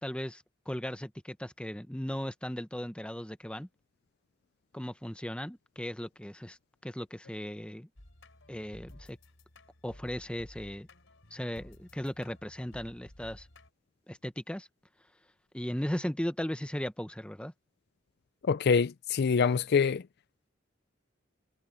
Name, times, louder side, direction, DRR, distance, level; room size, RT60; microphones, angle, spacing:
voice 1, 0.0-3.7 4.7-6.6 6.8-7.9 8.5-9.2 9.8-10.9 11.3-13.5 14.1-14.7 15.5-17.5, equal, 5° left, 1.0 m, -37 dB
sound 1, 8.0-13.7, left 1 dB, 85° left, 3.3 m, -54 dB
voice 2, 18.4-20.0, left 5 dB, 55° left, 0.4 m, -25 dB
head